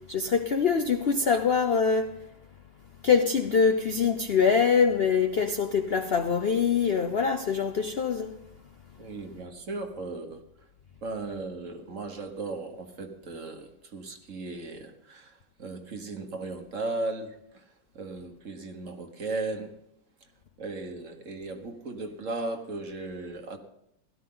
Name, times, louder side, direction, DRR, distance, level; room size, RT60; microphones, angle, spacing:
voice 1, 0.1-2.2 3.0-8.4, left 6 dB, 80° left, 0.5 m, -24 dB
voice 2, 9.0-10.7 11.0-19.7 20.6-23.6, right 3 dB, 45° right, 1.6 m, -36 dB
17.0 x 13.0 x 3.9 m
omnidirectional pair, 2.1 m